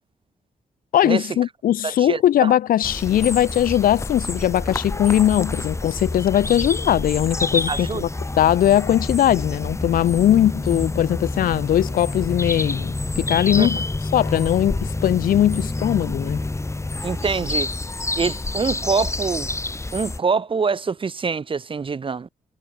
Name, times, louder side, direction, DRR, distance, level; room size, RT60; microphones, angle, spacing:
voice 1, 0.9-8.1 8.4-13.8 14.1-16.4, left 11 dB, 85° left, 0.9 m, -20 dB
voice 2, 1.8-2.5 7.7-8.0 13.6-13.7 17.0-17.7 18.2-19.5 19.9-22.3, right 5 dB, 35° right, 0.8 m, -25 dB
sound 1, 2.8-20.2, left 2 dB, 20° left, 2.2 m, -28 dB
cardioid pair, 70°, 14 cm